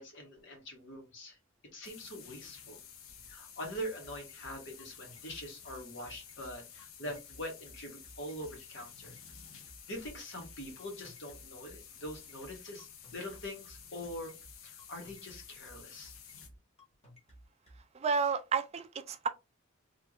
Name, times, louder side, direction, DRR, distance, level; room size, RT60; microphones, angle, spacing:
voice 1, 0.0-1.4 1.7-2.8 3.3-9.1 9.9-14.3 14.6-16.1, equal, 60° left, 1.5 m, -44 dB
sound 1, 1.8-16.5, left 8 dB, 80° left, 0.7 m, -52 dB
sound 2, 4.0-17.8, equal, 30° left, 1.4 m, -56 dB
voice 2, 17.9-19.3, right 5 dB, 30° right, 0.4 m, -31 dB
3.5 x 3.0 x 2.4 m
head